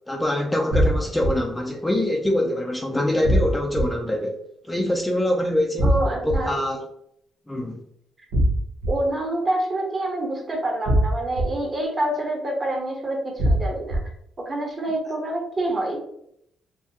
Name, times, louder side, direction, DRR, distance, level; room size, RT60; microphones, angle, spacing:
voice 1, 0.1-4.4 4.6-6.0 6.2-6.9 7.5-7.8, left 1 dB, 10° left, 1 dB, 0.5 m, -24 dB
sound 1, 0.7-1.3 3.2-3.8 5.8-6.4 8.3-8.9 10.9-11.4 13.4-14.0, right 1 dB, 85° right, 1.0 m, -20 dB
voice 2, 5.8-6.5 8.9-14.0 14.4-16.0, right 1 dB, 30° right, 0 dB, 1.2 m, -27 dB
4.7 x 2.2 x 2.8 m, 0.73 s
cardioid pair, 90°, 0 cm